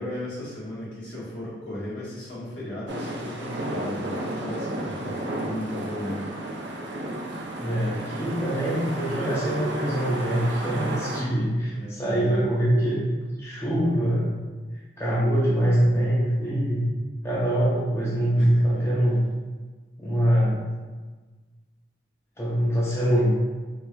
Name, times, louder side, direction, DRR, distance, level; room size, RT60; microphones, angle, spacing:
voice 1, 0.0-6.2 11.6-12.4 18.3-18.9, left 1 dB, 75° left, -8 dB, 1.4 m, -35 dB
sound 1, 2.9-11.2, right 1 dB, 80° right, 0.6 m, -33 dB
voice 2, 7.6-13.1 13.4-14.4 15.0-16.9 17.2-19.2 20.0-20.7 22.4-23.4, equal, 15° left, -7 dB, 0.6 m, -23 dB
4.3 x 3.2 x 2.3 m, 1.3 s
head